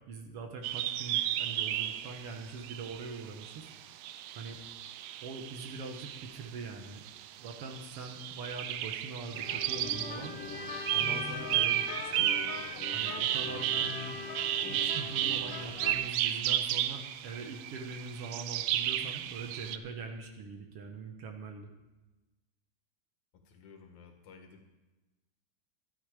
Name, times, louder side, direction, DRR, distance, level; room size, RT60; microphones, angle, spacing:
voice 1, 0.1-3.7 4.4-4.6 5.2-7.0 7.4-10.4 10.9-12.2 12.9-14.3 14.6-21.7, right 4 dB, 60° right, 4 dB, 1.9 m, -43 dB
sound 1, 0.6-6.5 6.8-19.8, right 12 dB, 80° right, 2.0 m, -34 dB
sound 2, 9.3-16.0, left 4 dB, 60° left, 1.8 m, -41 dB
voice 2, 23.5-24.7, left 5 dB, 85° left, 4 dB, 3.1 m, -54 dB
13.0 x 11.5 x 5.0 m, 1.1 s
omnidirectional pair, 3.3 m